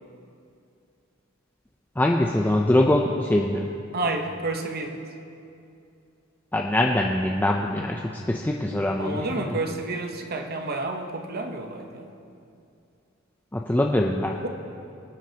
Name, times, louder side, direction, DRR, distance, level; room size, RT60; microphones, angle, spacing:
voice 1, 2.0-3.7 6.5-9.3 13.5-14.4, left 1 dB, 10° left, 0 dB, 0.5 m, -23 dB
voice 2, 3.9-5.0 9.0-12.1 14.4-14.5, right 2 dB, 50° right, 4 dB, 1.0 m, -30 dB
21.5 x 9.4 x 2.9 m, 2.6 s
head